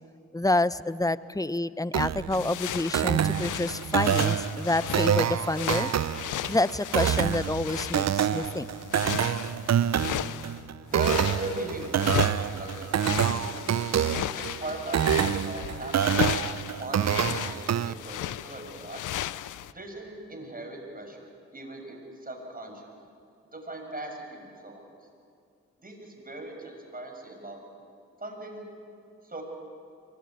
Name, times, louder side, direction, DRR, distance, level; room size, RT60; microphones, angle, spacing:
voice 1, 0.3-5.9 6.5-8.7, left 2 dB, 10° left, 16 dB, 0.8 m, -28 dB
sound 1, 1.9-17.9, right 9 dB, 60° right, 0.7 m, -27 dB
sound 2, 2.3-10.6 10.9-19.7, left 12 dB, 75° left, 0.6 m, -35 dB
voice 2, 10.9-13.6 14.3-16.4 16.8-19.1 19.7-22.9 23.5-24.8 25.8-27.6 28.2-28.7 29.2-29.4, right 2 dB, 30° right, 2 dB, 7.1 m, -39 dB
23.5 x 19.0 x 9.7 m, 2.4 s
supercardioid pair, 45°, 31 cm